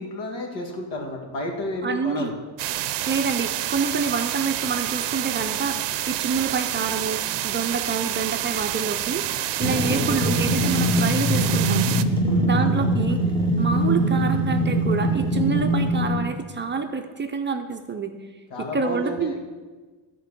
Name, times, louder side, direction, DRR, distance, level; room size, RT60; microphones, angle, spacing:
voice 1, 0.0-2.3 12.3-12.7 18.5-19.4, left 1 dB, 75° left, 1 dB, 2.0 m, -31 dB
voice 2, 1.8-2.3 3.1-5.8 6.1-11.9 12.4-13.2 13.6-18.1 18.6-19.4, right 5 dB, 25° right, 5 dB, 0.5 m, -27 dB
sound 1, 2.6-12.0, right 13 dB, 70° right, 0.6 m, -28 dB
sound 2, 9.6-16.4, right 1 dB, 10° left, 1.1 m, -22 dB
12.0 x 4.5 x 6.7 m, 1.3 s
cardioid pair, 150°, 44 cm